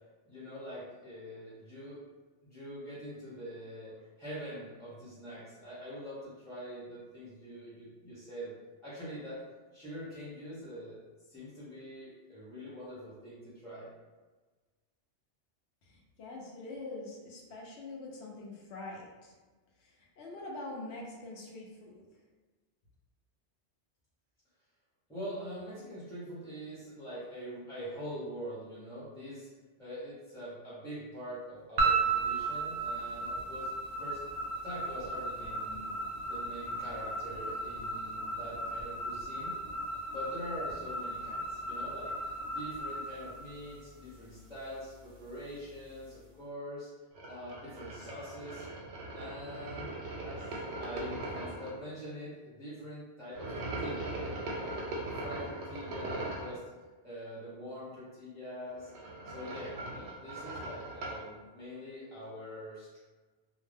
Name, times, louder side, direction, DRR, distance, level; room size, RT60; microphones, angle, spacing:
voice 1, 0.3-2.0 2.4-8.5 8.8-9.4 9.7-11.0 11.3-13.9 25.1-29.5 29.8-34.2 34.6-36.0 36.2-39.5 40.1-46.9 47.3-48.7 49.1-49.9 50.2-54.9 55.2-56.6 57.0-58.9 59.2-63.0, equal, 5° left, -10 dB, 0.6 m, -44 dB
voice 2, 15.8-19.3 19.8-22.1, left 2 dB, 75° left, -2 dB, 0.9 m, -44 dB
sound 1, 31.8-44.1, right 3 dB, 60° right, 0.7 m, -35 dB
sound 2, 47.2-51.7 53.3-56.6 58.7-61.3, right 2 dB, 85° right, 0.9 m, -40 dB
2.5 x 2.1 x 3.3 m, 1.3 s
omnidirectional pair, 1.2 m